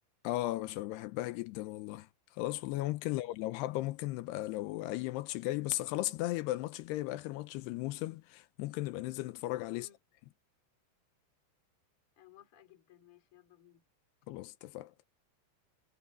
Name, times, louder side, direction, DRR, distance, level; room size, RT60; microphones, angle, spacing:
voice 1, 0.2-2.1 2.4-9.9 14.3-14.9, left 17 dB, 80° left, 2.5 m, -36 dB
voice 2, 12.2-13.8, left 11 dB, 35° left, 2.6 m, -60 dB
omnidirectional pair, 5.3 m